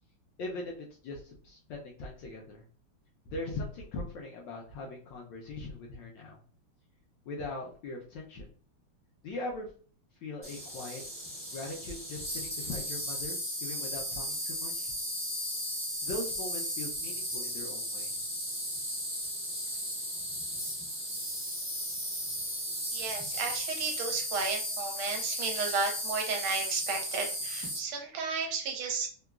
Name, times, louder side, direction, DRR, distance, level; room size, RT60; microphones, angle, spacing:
voice 1, 0.4-2.6 3.3-6.4 7.3-8.5 9.2-9.7 10.2-11.0 11.5-14.9 16.0-18.2, left 2 dB, 75° left, -1 dB, 1.1 m, -40 dB
Insect, 10.4-27.8, equal, 10° right, 0.5 m, -35 dB
voice 2, 22.9-29.1, right 4 dB, 80° right, 2 dB, 1.5 m, -33 dB
3.8 x 2.2 x 2.3 m, 0.42 s
omnidirectional pair, 2.4 m